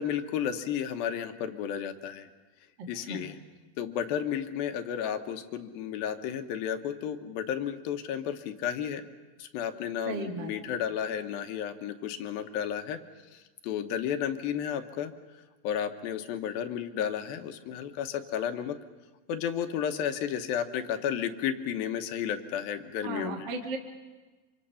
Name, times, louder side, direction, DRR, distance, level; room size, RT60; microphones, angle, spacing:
voice 1, 0.0-2.3 2.9-3.4 3.8-9.0 9.4-13.0 13.3-15.1 15.6-18.8 19.3-23.5, left 9 dB, 80° left, 7 dB, 2.9 m, -32 dB
voice 2, 10.1-10.5 23.0-23.8, right 3 dB, 40° right, 1 dB, 2.1 m, -35 dB
26.0 x 25.5 x 5.6 m, 1.2 s
omnidirectional pair, 4.2 m